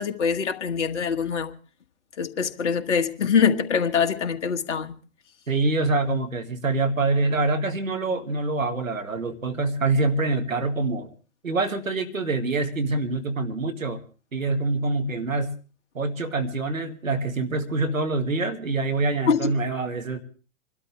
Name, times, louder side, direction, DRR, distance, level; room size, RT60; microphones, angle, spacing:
voice 1, 0.0-1.5 2.2-4.9 19.3-19.5, left 6 dB, 60° left, 1.6 m, -24 dB
voice 2, 5.5-11.1 11.4-14.0 14.3-15.5 15.9-20.2, right 3 dB, 80° right, 2.1 m, -25 dB
26.5 x 12.5 x 3.4 m
figure-of-eight pair, 115°, 40 cm